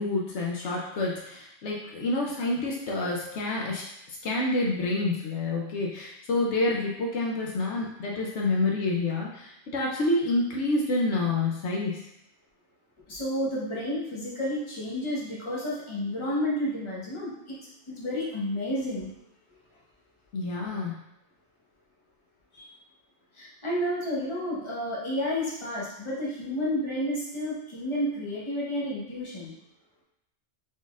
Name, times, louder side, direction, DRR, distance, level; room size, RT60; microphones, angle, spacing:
voice 1, 0.0-3.8 4.1-12.0 20.3-21.0, left 2 dB, 75° left, -2 dB, 0.9 m, -28 dB
voice 2, 13.1-17.6 17.9-19.1 22.5-22.7 23.3-29.5, equal, 25° left, -6 dB, 1.0 m, -31 dB
4.0 x 3.9 x 2.4 m, 0.82 s
omnidirectional pair, 1.2 m